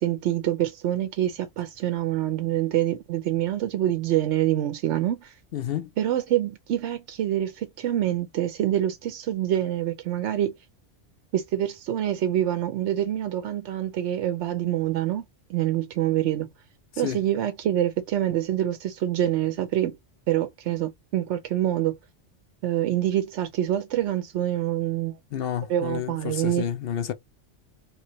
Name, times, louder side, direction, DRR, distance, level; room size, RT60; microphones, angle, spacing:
voice 1, 0.0-5.3 6.0-10.6 11.3-15.2 15.5-16.5 17.0-20.0 20.3-21.9 22.6-25.1 25.7-26.6, right 12 dB, 75° right, 0.8 m, -26 dB
voice 2, 5.5-5.9 17.0-17.2 25.3-27.1, left 9 dB, 60° left, 0.7 m, -30 dB
3.2 x 2.7 x 2.9 m
omnidirectional pair, 1.2 m